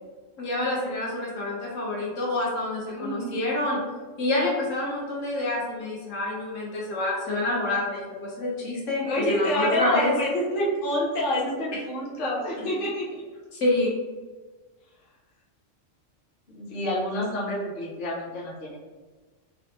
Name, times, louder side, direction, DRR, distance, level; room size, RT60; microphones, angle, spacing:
voice 1, 0.4-3.8 4.2-10.1 13.5-13.9, left 2 dB, 75° left, -4 dB, 1.2 m, -27 dB
voice 2, 2.9-3.4 9.0-13.2 16.5-18.8, left 1 dB, 50° left, -5 dB, 0.9 m, -27 dB
3.9 x 2.1 x 2.8 m, 1.3 s
omnidirectional pair, 1.3 m